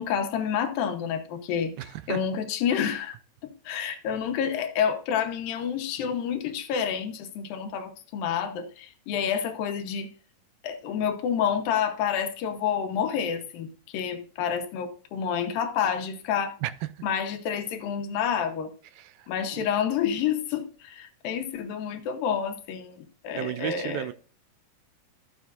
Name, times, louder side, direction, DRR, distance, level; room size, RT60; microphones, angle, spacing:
voice 1, 0.0-3.2 3.4-10.1 10.6-16.6 17.0-18.7 19.3-23.0 23.2-24.1, left 8 dB, 80° left, 2.7 m, -29 dB
voice 2, 1.8-2.2 16.6-16.7 19.0-19.1 19.5-19.6 23.3-24.1, right 14 dB, 85° right, 2.4 m, -32 dB
13.0 x 7.4 x 2.5 m
omnidirectional pair, 4.1 m